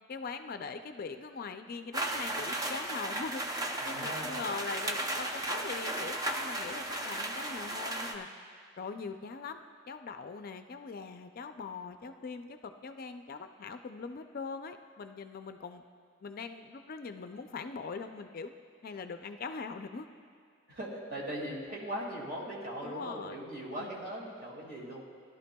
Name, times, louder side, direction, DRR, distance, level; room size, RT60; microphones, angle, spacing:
voice 1, 0.1-8.3 8.8-9.6 9.9-15.8 16.2-18.5 18.8-20.1 22.8-23.4 23.8-23.9, left 4 dB, 45° left, 8 dB, 0.4 m, -41 dB
sound 1, 1.9-8.1, right 1 dB, 20° right, 0.6 m, -35 dB
voice 2, 3.8-4.5 20.7-25.0, equal, 45° right, -2 dB, 2.1 m, -39 dB
17.0 x 11.5 x 2.3 m, 2.1 s
head